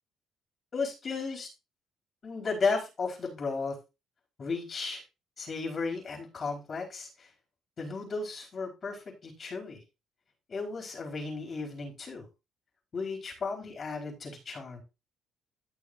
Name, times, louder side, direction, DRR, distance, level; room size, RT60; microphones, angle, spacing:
voice 1, 0.7-1.5 2.2-3.8 4.4-5.0 5.4-7.3 7.8-9.8 10.5-12.3 12.9-14.8, left 4 dB, 40° left, 1 dB, 4.4 m, -34 dB
13.5 x 6.4 x 2.6 m, 0.27 s
cardioid pair, 95°, 0 cm